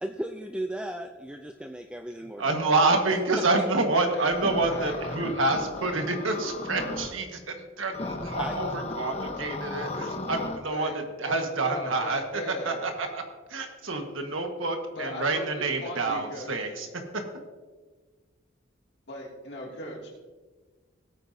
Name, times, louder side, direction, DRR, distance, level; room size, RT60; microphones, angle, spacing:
voice 1, 0.0-2.5 8.4-8.6, right 1 dB, 5° right, 5 dB, 0.3 m, -35 dB
voice 2, 2.4-13.2 13.5-16.9, right 3 dB, 85° right, 4 dB, 1.5 m, -28 dB
sound 1, 4.3-7.1 7.9-10.6, left 2 dB, 30° left, 1.0 m, -35 dB
voice 3, 4.7-5.4 10.7-10.9 11.3-12.9 14.9-16.7 19.1-20.2, left 1 dB, 55° left, -2 dB, 2.5 m, -39 dB
17.0 x 9.1 x 2.7 m, 1.4 s
head